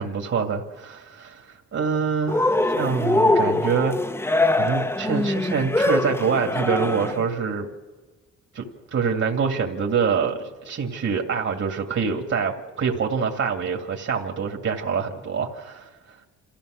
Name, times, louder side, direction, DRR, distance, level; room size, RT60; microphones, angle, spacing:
voice 1, 0.0-4.1 4.6-7.7 8.5-8.6 8.9-16.2, right 6 dB, 50° right, 2 dB, 2.5 m, -25 dB
Cheering, 2.3-7.2, left 2 dB, 10° left, 1.0 m, -23 dB
27.0 x 14.5 x 6.5 m, 1.3 s
cardioid pair, 90°, 30 cm